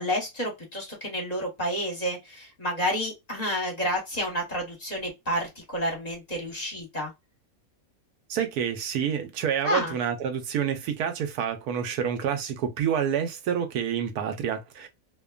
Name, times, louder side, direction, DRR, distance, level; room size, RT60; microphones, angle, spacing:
voice 1, 0.0-7.1 9.6-9.9, equal, 30° left, 1.1 m, -30 dB
voice 2, 8.3-14.9, right 8 dB, 85° right, 1.2 m, -28 dB
2.8 x 2.2 x 2.2 m
omnidirectional pair, 1.6 m